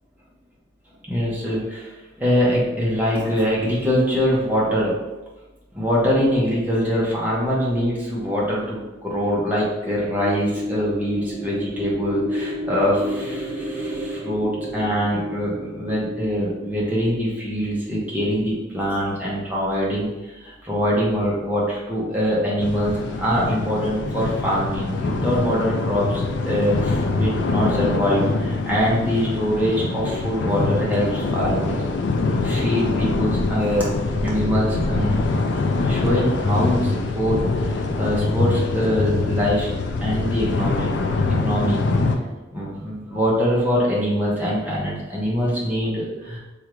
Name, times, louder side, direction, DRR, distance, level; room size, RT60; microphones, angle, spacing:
voice 1, 1.1-4.9 5.7-31.8 32.4-35.2 35.8-37.4 37.7-39.7 40.0-41.1 41.4-41.8 42.5-46.4, equal, 10° right, -7 dB, 0.8 m, -23 dB
sound 1, 9.8-18.0, equal, 65° right, 0.5 m, -31 dB
sound 2, 22.6-42.2, left 3 dB, 60° left, 0.3 m, -24 dB
3.6 x 2.4 x 3.0 m, 1.1 s
head